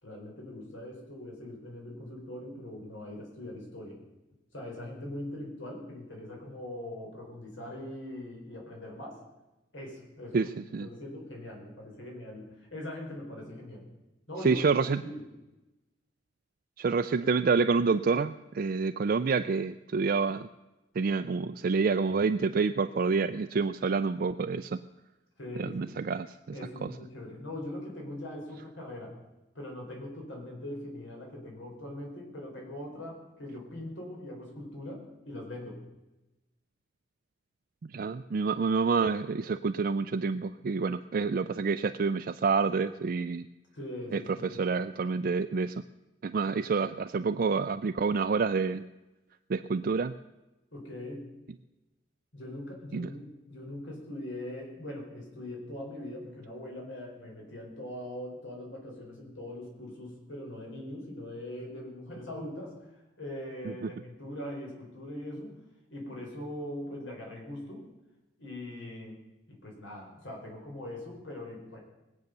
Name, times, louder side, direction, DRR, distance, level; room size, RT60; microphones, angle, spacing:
voice 1, 0.0-4.0 4.5-9.2 9.7-10.5 10.8-13.8 14.3-14.6 15.0-15.2 25.4-25.9 26.5-29.1 29.5-35.8 43.7-44.6 50.7-51.3 52.3-62.7 63.2-65.6 65.9-67.8 68.4-69.2 69.5-71.8, left 1 dB, 90° left, 0 dB, 4.6 m, -41 dB
voice 2, 10.3-10.9 14.4-15.0 16.8-20.5 21.0-24.8 25.6-26.3 26.8-26.9 37.9-43.5 44.1-45.7 46.2-48.8 49.5-50.1 52.9-53.1 63.7-63.9, right 4 dB, 50° right, 8 dB, 0.4 m, -28 dB
20.0 x 8.1 x 6.7 m, 1.0 s
head